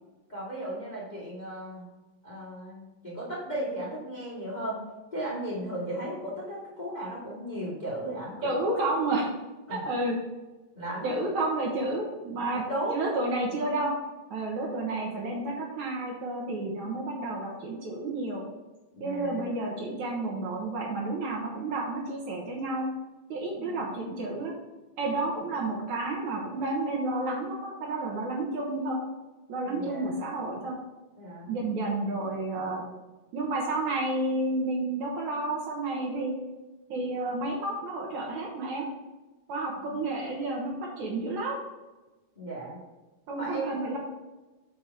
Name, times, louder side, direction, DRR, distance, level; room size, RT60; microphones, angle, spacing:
voice 1, 0.3-1.9 2.2-4.8 5.1-8.8 9.7-9.8 10.8-11.5 12.7-13.0 18.9-19.5 23.5-23.8 29.6-30.1 31.2-31.5 39.8-40.0 42.4-42.8 43.3-43.7, right 1 dB, 15° left, -7 dB, 2.0 m, -36 dB
voice 2, 8.4-9.3 9.7-10.2 11.0-12.6 12.9-14.0 14.3-18.4 19.0-22.9 23.3-24.5 25.0-29.0 29.5-30.8 31.5-32.9 33.3-36.4 36.9-38.9 39.5-41.6 43.3-44.0, right 2 dB, 65° right, -2 dB, 2.4 m, -31 dB
7.2 x 5.8 x 4.7 m, 1.1 s
omnidirectional pair, 3.9 m